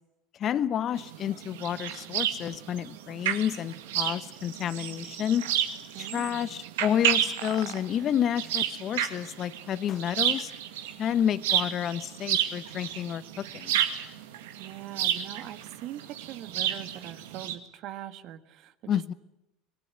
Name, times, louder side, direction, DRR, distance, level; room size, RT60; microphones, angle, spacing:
voice 1, 0.4-5.5 6.0-10.5 11.0-13.8 18.9-19.1, left 9 dB, 45° left, 16 dB, 1.0 m, -30 dB
sound 1, 1.0-17.5, right 10 dB, 75° right, 2.1 m, -31 dB
voice 2, 5.9-6.5 14.6-19.0, right 12 dB, 55° right, 11 dB, 1.7 m, -42 dB
26.5 x 19.5 x 9.6 m, 0.88 s
hypercardioid pair, 75°, 0 cm